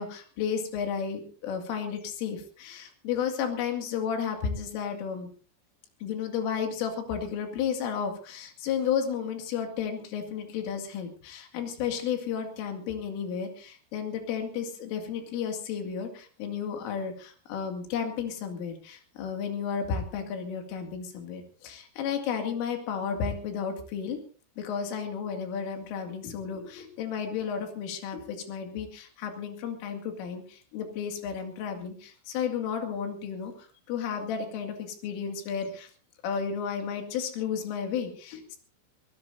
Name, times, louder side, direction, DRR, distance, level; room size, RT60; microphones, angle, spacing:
voice 1, 0.0-5.3 6.0-24.2 24.6-35.9 36.2-38.6, left 7 dB, 80° left, 4 dB, 4.7 m, -33 dB
25.0 x 16.5 x 2.6 m, 0.39 s
omnidirectional pair, 5.7 m